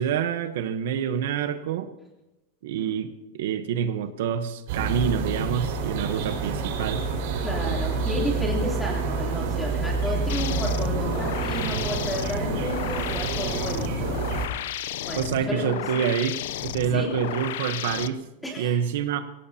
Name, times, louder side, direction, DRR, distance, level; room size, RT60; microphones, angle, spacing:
voice 1, 0.0-1.9 2.6-7.0 15.2-16.4 16.6-18.2 18.6-19.2, right 8 dB, 65° right, 9 dB, 1.0 m, -27 dB
sound 1, 4.7-14.5, right 4 dB, 50° right, 5.0 m, -28 dB
voice 2, 7.4-14.3 14.7-16.1 16.9-17.1 18.4-18.8, equal, 5° left, -2 dB, 3.1 m, -32 dB
sound 2, 10.3-18.1, left 12 dB, 60° left, 0.6 m, -33 dB
24.0 x 17.0 x 2.8 m, 0.98 s
supercardioid pair, 180°, 0 cm